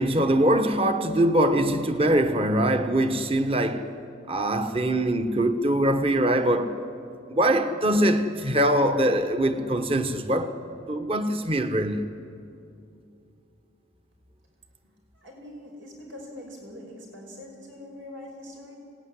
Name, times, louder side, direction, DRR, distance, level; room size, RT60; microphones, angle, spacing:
voice 1, 0.0-3.9 4.3-6.7 7.3-10.6 10.9-12.0, right 1 dB, 30° right, 1.2 m, -23 dB
voice 2, 15.1-18.8, left 1 dB, 90° right, 5.2 m, -43 dB
26.0 x 18.5 x 9.8 m
head